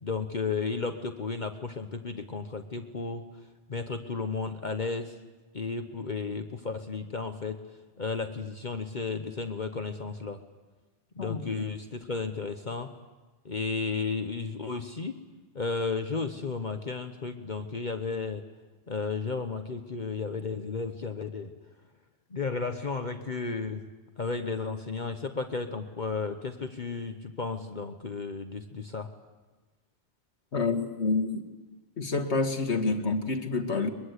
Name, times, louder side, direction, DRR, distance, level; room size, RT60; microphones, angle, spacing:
voice 1, 0.0-3.3 3.7-5.2 5.5-7.6 8.0-10.4 11.2-12.9 13.4-15.2 15.5-18.4 18.9-21.5 22.3-23.9 24.2-29.1, left 4 dB, 45° left, 6 dB, 1.2 m, -33 dB
voice 2, 11.2-11.7 30.5-31.4 32.0-33.9, left 3 dB, 80° left, 5 dB, 2.0 m, -28 dB
23.0 x 23.0 x 8.2 m, 1.2 s
omnidirectional pair, 1.1 m